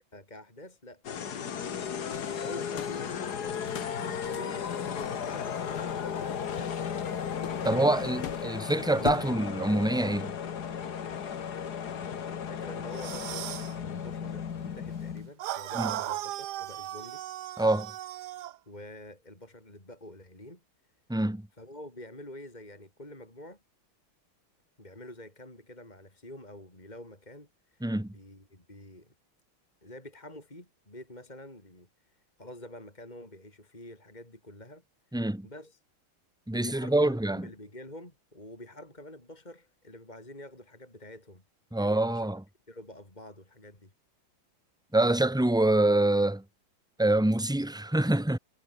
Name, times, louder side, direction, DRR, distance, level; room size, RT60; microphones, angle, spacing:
voice 1, 0.1-1.5 2.3-3.7 4.0-6.0 6.3-7.0 7.6-10.0 12.4-17.2 18.7-20.6 21.6-23.6 24.8-27.9 28.1-29.1 29.8-34.8 35.4-35.8 36.5-41.4 41.8-42.3 42.7-43.9, left 1 dB, 20° left, 6.0 m, -47 dB
sound 1, 1.0-15.3, left 7 dB, 50° left, 1.9 m, -35 dB
sound 2, 2.1-9.3, left 8 dB, 90° left, 2.7 m, -43 dB
voice 2, 7.6-10.4 15.7-15.9 17.6-17.9 21.1-21.4 27.8-28.1 35.1-35.5 36.5-37.5 41.7-42.4 44.9-46.4 47.0-48.4, right 1 dB, ahead, 1.2 m, -25 dB
sound 3, 12.9-13.7 15.4-18.6, right 13 dB, 65° right, 1.1 m, -36 dB
omnidirectional pair, 2.3 m